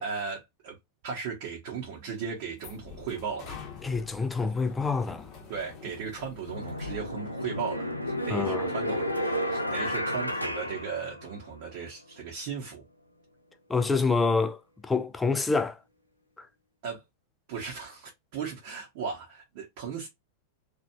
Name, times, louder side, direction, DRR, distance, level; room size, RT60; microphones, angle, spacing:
voice 1, 0.0-0.8 1.0-3.6 5.5-7.9 8.2-12.8 16.8-17.0 17.5-20.1, right 6 dB, 50° right, 0.9 m, -36 dB
sound 1, 1.9-7.1, left 7 dB, 40° left, 0.9 m, -47 dB
voice 2, 3.8-5.3 8.3-8.7 13.7-15.8 16.4-16.5, left 4 dB, 10° left, 0.4 m, -27 dB
sound 2, 5.7-5.8 6.5-11.6, equal, 90° left, 0.4 m, -32 dB
3.0 x 2.4 x 2.3 m
figure-of-eight pair, 90°, 0 cm